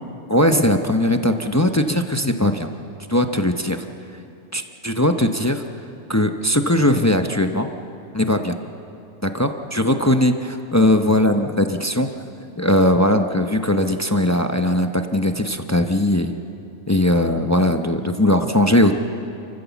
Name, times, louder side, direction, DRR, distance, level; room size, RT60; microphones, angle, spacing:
voice 1, 0.3-2.7 3.1-3.8 4.5-5.6 6.1-7.7 8.1-8.6 9.2-12.1 12.6-16.3 16.9-18.9, left 1 dB, 15° left, 6 dB, 0.7 m, -19 dB
29.5 x 14.5 x 7.2 m, 2.7 s
omnidirectional pair, 1.3 m